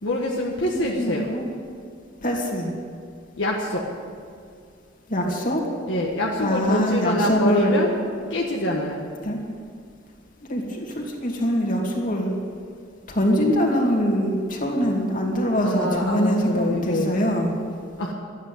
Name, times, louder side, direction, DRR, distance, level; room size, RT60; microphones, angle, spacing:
voice 1, 0.0-1.2 3.4-3.8 5.9-7.9 8.3-9.1 15.6-17.1 18.0-18.1, left 1 dB, 65° left, -3 dB, 1.5 m, -25 dB
voice 2, 0.7-1.5 2.2-2.7 5.1-5.6 6.4-7.8 9.2-9.4 10.4-12.3 13.1-17.5, equal, 40° left, -1 dB, 2.5 m, -23 dB
13.5 x 9.2 x 9.2 m, 2.2 s
head